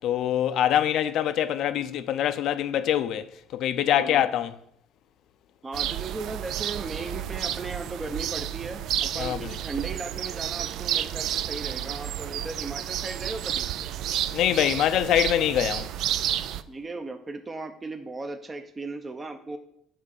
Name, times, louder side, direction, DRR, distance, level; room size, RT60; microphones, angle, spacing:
voice 1, 0.0-3.2 3.5-4.5 9.2-9.5 14.3-15.9, left 11 dB, 65° left, 0.5 m, -24 dB
voice 2, 3.9-4.3 5.6-13.7 16.7-19.6, right 3 dB, 20° right, 0.7 m, -37 dB
sound 1, 5.7-16.6, right 11 dB, 65° right, 0.4 m, -31 dB
7.5 x 3.7 x 6.5 m
cardioid pair, 100°, 0 cm